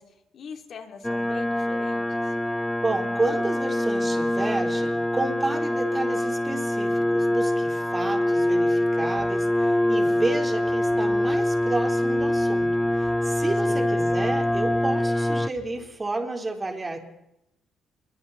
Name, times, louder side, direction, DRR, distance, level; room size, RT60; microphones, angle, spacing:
voice 1, 0.0-2.3 13.6-14.0, left 6 dB, 60° left, 4 dB, 3.4 m, -42 dB
sound 1, 1.0-15.5, left 1 dB, 5° left, 0.6 m, -24 dB
voice 2, 2.8-17.0, right 2 dB, 25° right, 3 dB, 3.9 m, -31 dB
sound 2, 9.2-16.0, left 3 dB, 40° left, 4.2 m, -52 dB
28.5 x 22.5 x 4.2 m, 0.85 s
cardioid pair, 90°, 0 cm